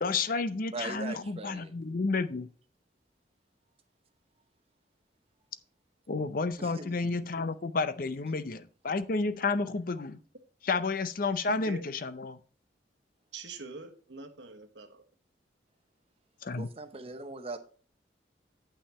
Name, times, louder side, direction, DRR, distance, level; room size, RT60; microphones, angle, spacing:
voice 1, 0.0-2.5 6.1-10.2 10.6-12.4 16.4-16.7, left 3 dB, 50° left, 0.6 m, -31 dB
voice 2, 0.7-1.7 6.6-7.0 16.6-17.6, right 3 dB, 30° right, 0.8 m, -40 dB
voice 3, 11.3-11.8 13.3-15.0, right 3 dB, 75° right, 1.3 m, -44 dB
8.9 x 5.8 x 4.2 m
head